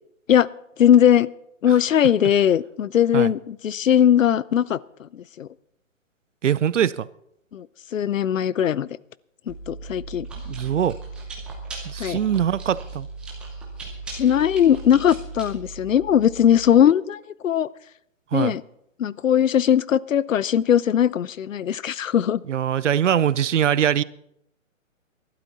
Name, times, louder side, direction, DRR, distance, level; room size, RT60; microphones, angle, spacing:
voice 1, 0.8-1.3 1.6-5.5 7.5-7.7 7.9-8.9 9.5-10.3 12.0-12.2 14.1-17.7 18.3-18.6 19.0-22.4, left 9 dB, 70° left, 21 dB, 0.7 m, -19 dB
voice 2, 6.4-7.1 10.5-11.0 11.8-13.1 18.3-18.6 22.5-24.0, right 9 dB, 65° right, 20 dB, 0.7 m, -22 dB
Chewing mastication, 9.5-16.7, right 3 dB, ahead, 0.6 m, -37 dB
21.0 x 12.0 x 4.1 m, 0.76 s
hypercardioid pair, 155°, 40 cm